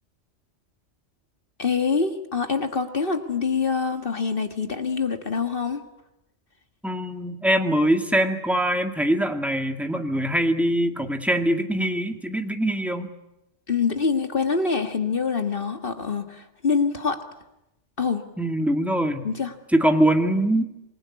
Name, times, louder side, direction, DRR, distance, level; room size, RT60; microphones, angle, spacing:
voice 1, 1.6-5.8 13.7-17.2 18.0-18.2 19.2-19.5, left 5 dB, 50° left, 7 dB, 2.0 m, -25 dB
voice 2, 6.8-13.1 18.4-19.3 19.7-20.6, right 1 dB, ahead, 5 dB, 2.1 m, -23 dB
27.0 x 20.0 x 9.8 m, 0.87 s
omnidirectional pair, 1.2 m